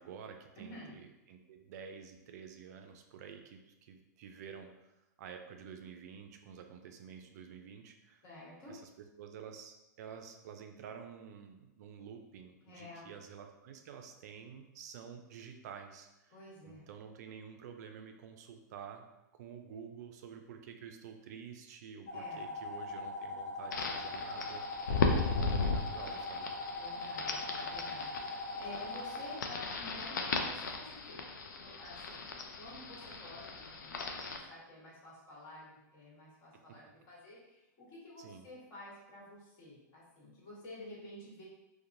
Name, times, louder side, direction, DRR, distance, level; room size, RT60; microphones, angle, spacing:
voice 1, 0.0-8.2 8.7-16.4 16.7-19.0 19.3-24.6 25.0-26.5 38.2-38.5, right 7 dB, 65° right, 5 dB, 0.4 m, -50 dB
voice 2, 0.6-0.9 8.2-8.7 12.6-13.1 16.3-16.8 22.1-22.4 26.8-31.2 31.6-32.3 32.6-41.4, left 1 dB, 45° left, -6 dB, 1.4 m, -51 dB
sound 1, 22.1-29.3, left 2 dB, 25° left, 1.2 m, -41 dB
sound 2, 23.7-34.4, left 4 dB, 90° left, 0.4 m, -37 dB
2.9 x 2.1 x 2.5 m, 0.94 s
hypercardioid pair, 130°, 10 cm